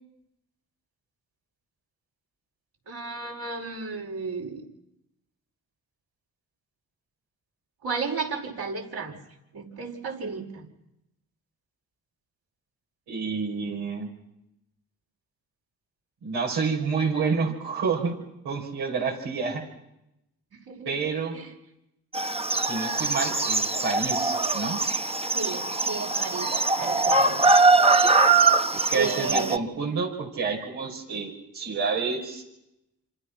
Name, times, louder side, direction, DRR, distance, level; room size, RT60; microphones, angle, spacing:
voice 1, 2.9-4.6 7.8-9.2 9.5-10.6 20.7-20.9 21.3-21.5 25.3-27.5 28.9-29.6, right 4 dB, 70° right, -1 dB, 5.7 m, -33 dB
voice 2, 13.1-14.1 16.2-18.2 18.4-19.6 20.9-21.4 22.6-24.8 28.7-32.4, right 5 dB, 90° right, -1 dB, 5.5 m, -29 dB
sound 1, 22.1-29.6, right 3 dB, 15° right, 1.3 m, -22 dB
27.5 x 27.0 x 6.0 m, 0.85 s
supercardioid pair, 45°, 38 cm